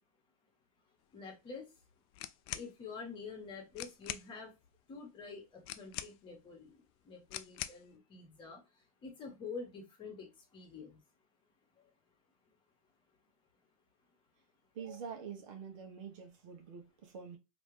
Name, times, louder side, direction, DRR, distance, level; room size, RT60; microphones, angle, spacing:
voice 1, 1.1-1.6 2.5-4.5 4.9-8.6 9.0-11.0, left 4 dB, 25° left, 1.6 m, -47 dB
sound 1, 2.1-2.7 3.4-3.5 3.7-4.3 5.6-6.4 7.3-7.9, left 13 dB, 40° left, 0.4 m, -43 dB
voice 2, 14.7-17.4, right 6 dB, 60° right, 1.2 m, -46 dB
3.2 x 3.0 x 3.3 m
hypercardioid pair, 120°, 19 cm